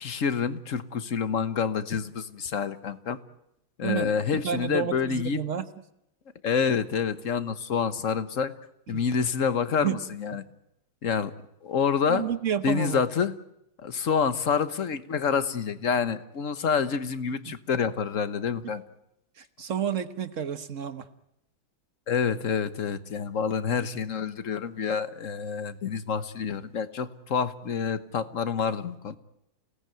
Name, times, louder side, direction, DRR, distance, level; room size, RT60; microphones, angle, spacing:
voice 1, 0.0-3.2 3.8-5.4 6.4-8.5 8.9-10.4 11.0-11.3 11.6-12.2 12.6-13.3 13.8-18.8 22.1-29.2, left 6 dB, 45° left, 12 dB, 1.3 m, -27 dB
voice 2, 3.8-4.1 4.4-5.6 9.8-10.0 12.1-13.0 17.5-17.6 19.4-21.1, right 8 dB, 45° right, 11 dB, 1.3 m, -30 dB
29.5 x 18.0 x 9.2 m, 0.83 s
omnidirectional pair, 2.3 m